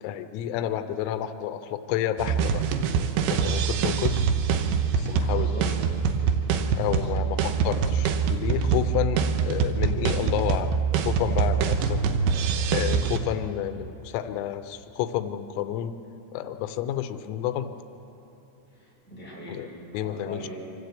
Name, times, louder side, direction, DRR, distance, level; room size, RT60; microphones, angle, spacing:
voice 1, 0.0-2.7 3.3-4.2 5.0-5.5 6.8-12.0 12.7-15.9 16.3-17.7 19.5-19.7 19.9-20.4, left 11 dB, 90° left, 9 dB, 3.5 m, -30 dB
sound 1, 2.2-13.2, right 6 dB, 75° right, 3.0 m, -24 dB
voice 2, 5.3-5.7 6.7-7.2 18.7-20.6, equal, ahead, -6 dB, 5.9 m, -41 dB
25.5 x 15.0 x 8.2 m, 2.9 s
omnidirectional pair, 6.0 m